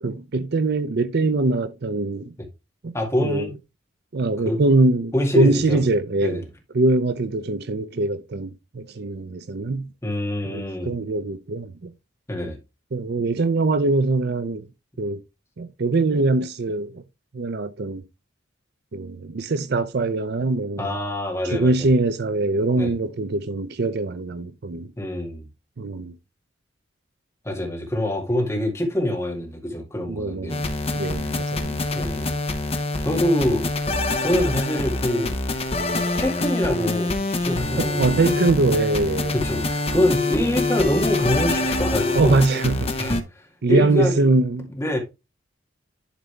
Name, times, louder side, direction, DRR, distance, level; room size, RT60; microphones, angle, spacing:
voice 1, 0.0-2.3 2.8-2.9 3.2-3.5 4.1-6.5 6.7-9.9 10.5-11.9 12.4-12.5 12.9-14.7 15.0-15.2 15.6-17.0 17.3-18.0 18.9-20.9 21.4-24.9 25.8-26.1 30.1-31.8 38.0-39.3 42.1-42.9 43.6-44.7, right 3 dB, 55° right, 0.5 m, -22 dB
voice 2, 2.9-3.6 4.4-4.6 5.1-5.8 6.2-6.4 10.0-10.9 12.3-12.6 20.8-21.9 22.8-22.9 25.0-25.5 27.4-30.7 31.9-32.4 33.0-33.7 34.2-35.3 36.1-38.4 39.3-42.4 43.0-44.3 44.7-45.0, left 1 dB, 15° left, 2.2 m, -25 dB
sound 1, 30.5-43.2, left 2 dB, 30° left, 0.9 m, -25 dB
11.5 x 4.0 x 3.3 m
head